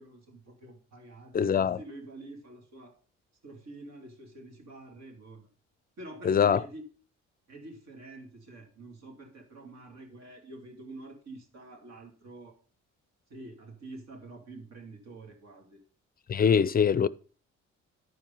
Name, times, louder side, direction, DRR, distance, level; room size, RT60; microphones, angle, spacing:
voice 1, 0.0-3.0 3.4-5.5 6.0-6.8 7.5-12.6 13.3-15.8, right 2 dB, 60° right, 2.7 m, -47 dB
voice 2, 1.3-1.8 6.2-6.6 16.3-17.1, left 7 dB, 30° left, 0.4 m, -23 dB
10.5 x 4.7 x 5.4 m
cardioid pair, 90°, 30 cm